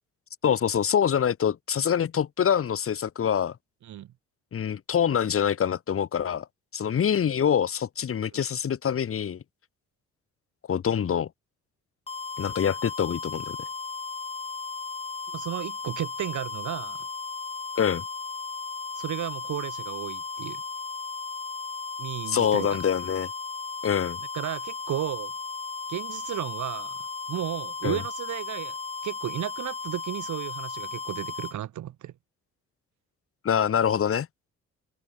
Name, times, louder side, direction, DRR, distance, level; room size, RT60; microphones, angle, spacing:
voice 1, 0.4-3.5 4.5-6.5 6.7-9.4 10.7-11.3 12.4-13.6 17.8-18.0 22.3-23.3 23.8-24.2 27.8-28.0 33.4-34.3, left 8 dB, 45° left, 1.7 m, -25 dB
voice 2, 3.8-4.1 8.3-8.4 15.3-17.1 19.0-20.6 22.0-22.7 24.3-25.3 25.9-28.7 29.0-32.1, right 12 dB, 70° right, 2.5 m, -34 dB
sound 1, 12.1-31.6, left 4 dB, 20° left, 0.9 m, -36 dB
cardioid pair, 90°, 30 cm